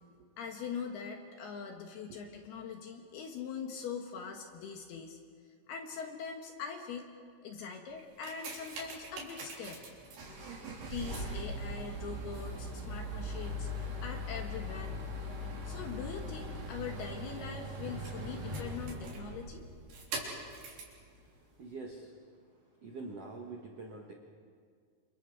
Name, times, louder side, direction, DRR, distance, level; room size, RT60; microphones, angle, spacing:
voice 1, 0.4-5.2 5.7-7.1 7.4-9.8 10.8-13.7 14.0-15.1 15.6-19.6 20.2-20.4, left 6 dB, 65° left, 3 dB, 2.8 m, -42 dB
sound 1, 8.0-21.0 21.7-21.8, equal, 60° right, 5.6 m, -40 dB
Drum, 17.8-19.9, left 1 dB, 5° right, 1.1 m, -46 dB
voice 2, 20.9-24.1, right 3 dB, 85° right, 0 dB, 1.3 m, -47 dB
29.5 x 28.0 x 4.9 m, 2.1 s
omnidirectional pair, 5.6 m